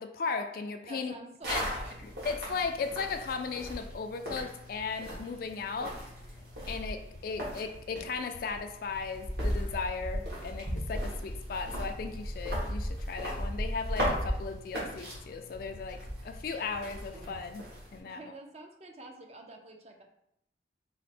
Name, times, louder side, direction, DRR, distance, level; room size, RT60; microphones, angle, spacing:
voice 1, 0.0-1.1 1.5-1.7 2.2-6.0 6.7-18.2, left 5 dB, 50° left, 7 dB, 0.3 m, -36 dB
voice 2, 0.9-2.1 18.0-20.0, right 2 dB, 35° right, 2 dB, 0.5 m, -48 dB
sound 1, 1.4-18.0, equal, 60° right, 1.4 m, -37 dB
sound 2, 7.1-7.4 7.7-8.0 8.3-8.6 8.9-9.2 9.5-9.8 10.1-10.4 10.7-11.0 11.3-11.6 11.9-12.2 12.5-12.8 13.1-13.4 13.7-14.0 14.3-14.6 14.9-15.2 15.5-15.8 16.1-16.4 16.7-17.0 17.3-17.4, left 2 dB, 75° left, 0.7 m, -50 dB
4.2 x 2.1 x 4.1 m, 0.78 s
head